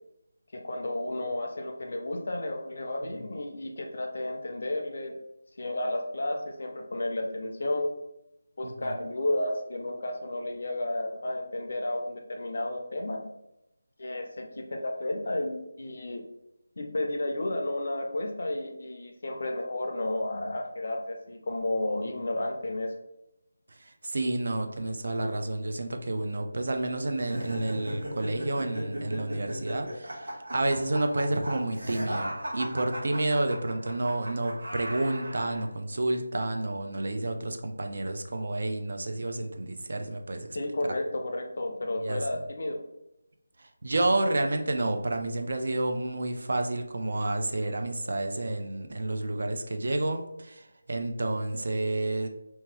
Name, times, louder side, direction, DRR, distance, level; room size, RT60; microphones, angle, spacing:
voice 1, 0.5-5.1 5.6-7.9 8.6-13.2 14.0-16.2 16.8-22.9 40.5-42.8, left 1 dB, 45° left, 3 dB, 0.5 m, -32 dB
voice 2, 8.6-9.0 23.8-40.5 40.9-41.0 42.0-42.3 43.6-52.3, right 2 dB, 50° right, 5 dB, 0.3 m, -30 dB
sound 1, 27.2-35.6, right 1 dB, 80° right, 1.0 m, -37 dB
2.8 x 2.2 x 3.0 m, 0.88 s
figure-of-eight pair, 175°, 0 cm